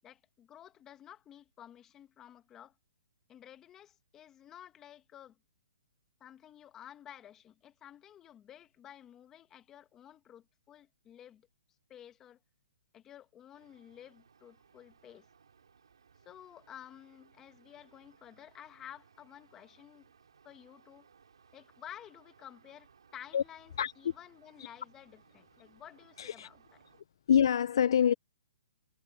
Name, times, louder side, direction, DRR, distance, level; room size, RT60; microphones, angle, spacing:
voice 1, 0.0-2.7 3.3-5.4 6.2-11.5 11.9-12.4 12.9-15.3 16.2-20.1 20.4-21.1 21.5-26.8, left 10 dB, 15° left, 1.9 m, -53 dB
sound 1, 13.5-27.0, right 6 dB, 85° right, 6.8 m, -64 dB
voice 2, 26.2-26.5 27.3-28.1, left 8 dB, 65° left, 0.5 m, -26 dB
hypercardioid pair, 150°, 3 cm